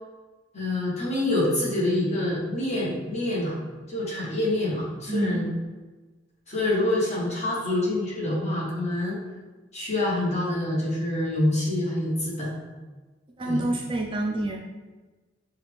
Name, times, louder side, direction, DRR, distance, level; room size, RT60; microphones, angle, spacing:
voice 1, 0.5-3.6 3.9-5.5 6.5-9.2 9.7-12.5 13.4-13.7, left 1 dB, 35° left, -5 dB, 1.3 m, -26 dB
voice 2, 5.1-5.5 13.4-14.6, right 1 dB, 25° right, 1 dB, 0.3 m, -27 dB
5.6 x 2.3 x 3.4 m, 1.3 s
head